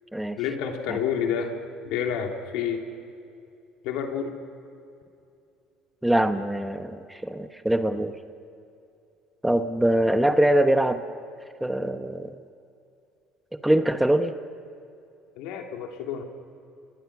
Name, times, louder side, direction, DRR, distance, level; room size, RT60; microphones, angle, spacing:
voice 1, 0.4-1.6 1.8-2.9 3.8-4.4 15.3-16.2, left 7 dB, 80° left, 3 dB, 2.9 m, -29 dB
voice 2, 6.0-8.1 9.4-11.0 11.6-12.4 13.6-14.3, right 1 dB, 5° right, 8 dB, 1.1 m, -23 dB
29.0 x 21.5 x 6.1 m, 2.6 s
cardioid pair, 110°, 0 cm